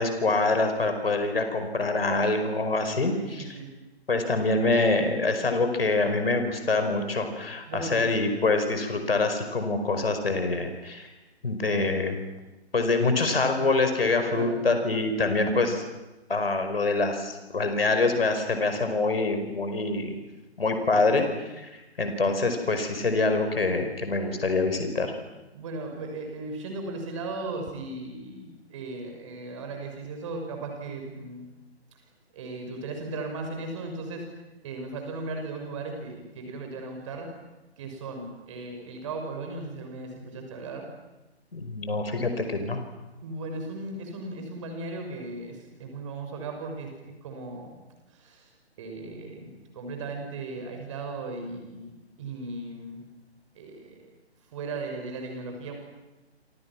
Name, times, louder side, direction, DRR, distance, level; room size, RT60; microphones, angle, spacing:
voice 1, 0.0-3.6 4.1-11.1 11.4-12.2 12.7-15.8 16.3-20.2 20.6-21.2 21.5-25.1 41.5-42.8, left 3 dB, 60° left, 6 dB, 5.2 m, -25 dB
voice 2, 3.1-3.7 7.7-8.0 14.3-14.6 25.5-31.6 32.3-34.2 34.6-37.3 37.8-40.9 43.2-46.9 47.2-47.8 48.1-48.5 48.8-53.0 53.5-54.0 54.5-55.8, right 3 dB, 30° right, 3 dB, 6.0 m, -37 dB
28.5 x 27.5 x 6.1 m, 1.1 s
figure-of-eight pair, 145°, 33 cm